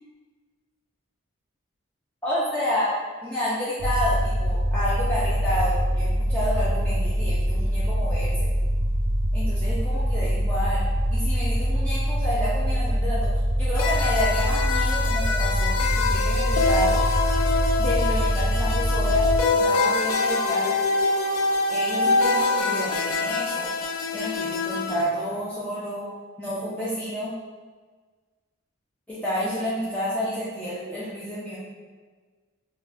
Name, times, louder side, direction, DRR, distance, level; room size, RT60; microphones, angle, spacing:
voice 1, 2.2-8.5 9.3-10.8 11.1-13.3 13.6-17.0 17.8-19.3 19.5-20.7 21.7-23.7 24.1-26.1 26.4-27.3 29.1-31.6, equal, 5° left, -10 dB, 0.4 m, -29 dB
sound 1, 3.8-19.4, equal, 65° right, 0.4 m, -24 dB
sound 2, 13.8-25.0, left 3 dB, 80° left, 0.3 m, -25 dB
2.5 x 2.3 x 3.2 m, 1.4 s
head